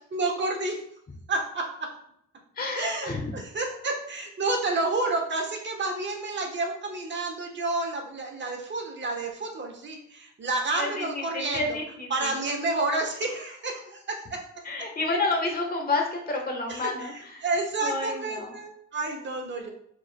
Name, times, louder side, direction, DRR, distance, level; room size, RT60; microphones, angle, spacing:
voice 1, 0.1-0.8 1.3-1.9 2.8-11.8 12.1-14.4 16.7-19.7, right 2 dB, 40° right, 2 dB, 1.2 m, -30 dB
voice 2, 2.6-3.3 10.8-12.3 14.6-17.4 17.8-18.5, left 3 dB, 30° left, 1 dB, 1.3 m, -30 dB
4.8 x 4.6 x 2.2 m, 0.71 s
cardioid pair, 90°, 30 cm